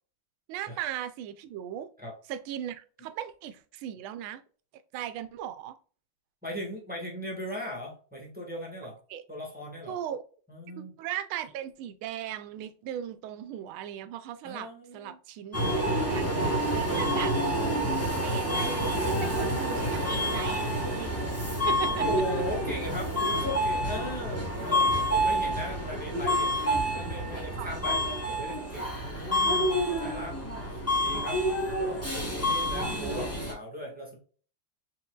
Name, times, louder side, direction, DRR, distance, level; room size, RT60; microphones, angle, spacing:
voice 1, 0.5-1.9 2.3-4.4 4.9-5.8 9.1-9.2 9.9-10.2 10.7-15.6 15.9-16.4 16.7-17.3 18.2-21.2 21.7-22.1 27.6-27.7, right 11 dB, 80° right, 12 dB, 1.4 m, -37 dB
voice 2, 6.4-9.0 9.3-10.0 10.5-10.9 14.4-15.2 21.8-28.0 28.3-30.4 30.6-31.4 31.8-34.2, equal, 5° right, -3 dB, 1.0 m, -38 dB
Subway metro underground, 15.5-33.5, equal, 15° left, 0.6 m, -28 dB
4.5 x 3.8 x 2.2 m, 0.41 s
omnidirectional pair, 2.3 m